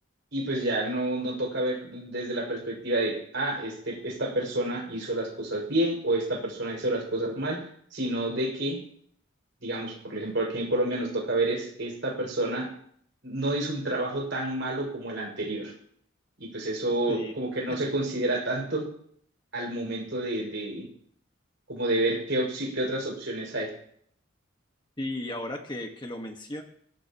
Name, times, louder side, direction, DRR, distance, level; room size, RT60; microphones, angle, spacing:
voice 1, 0.3-7.6 7.9-8.8 9.6-12.7 13.2-15.7 16.4-18.9 19.5-20.9 21.7-23.7, right 1 dB, 60° right, -1 dB, 6.0 m, -29 dB
voice 2, 25.0-26.6, left 1 dB, 20° left, 3 dB, 1.5 m, -35 dB
22.0 x 19.0 x 3.0 m, 0.65 s
head